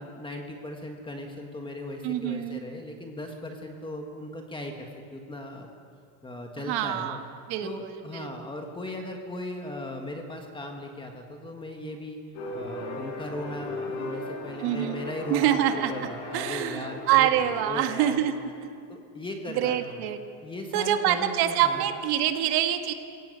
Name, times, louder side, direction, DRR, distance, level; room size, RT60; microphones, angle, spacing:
voice 1, 0.0-5.7 6.2-7.2 7.6-12.2 12.5-17.3 17.7-18.2 18.9-20.1 20.4-21.9, left 1 dB, 10° left, 2 dB, 1.6 m, -37 dB
voice 2, 2.0-2.6 6.7-7.2 7.5-8.3 14.6-15.0 15.3-15.9 16.3-18.5 19.6-20.2 20.7-22.9, right 11 dB, 60° right, 6 dB, 1.7 m, -25 dB
sound 1, 12.3-17.6, left 2 dB, 70° left, 4.4 m, -37 dB
20.5 x 17.5 x 8.0 m, 2.3 s
cardioid pair, 155°, 43 cm